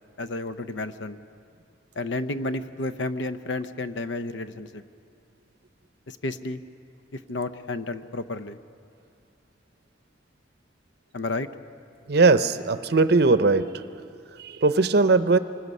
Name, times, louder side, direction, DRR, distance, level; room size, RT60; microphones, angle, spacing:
voice 1, 0.2-1.2 2.0-4.8 6.1-6.6 7.1-8.6 11.1-11.5, left 2 dB, 75° left, 11 dB, 0.7 m, -31 dB
voice 2, 12.1-13.8 14.4-15.4, right 3 dB, 60° right, 12 dB, 0.6 m, -19 dB
25.5 x 19.5 x 5.5 m, 2.4 s
head